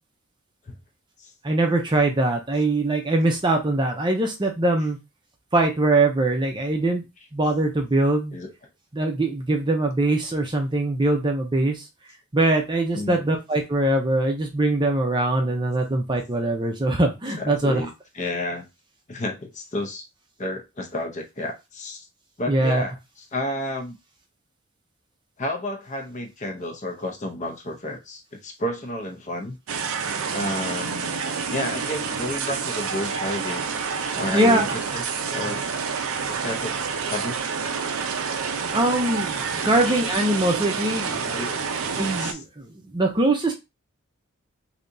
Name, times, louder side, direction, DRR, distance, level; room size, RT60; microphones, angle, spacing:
voice 1, 1.4-5.0 5.5-7.0 7.3-8.4 8.9-11.8 12.3-17.8 22.5-22.8 34.3-34.6 38.7-41.2 41.9-42.6 42.9-43.5, right 2 dB, 20° right, 2 dB, 0.5 m, -22 dB
voice 2, 12.9-13.3 17.4-18.6 19.1-20.1 20.4-22.1 22.4-24.0 25.4-29.6 30.3-31.2 31.5-33.7 34.0-35.0 35.3-35.7 36.3-36.8 37.1-37.5 39.6-40.0 41.0-41.7 42.2-42.4, left 1 dB, 35° left, 3 dB, 0.7 m, -31 dB
sound 1, 29.7-42.3, right 5 dB, 70° right, 0.5 m, -28 dB
3.3 x 2.8 x 2.6 m, 0.23 s
head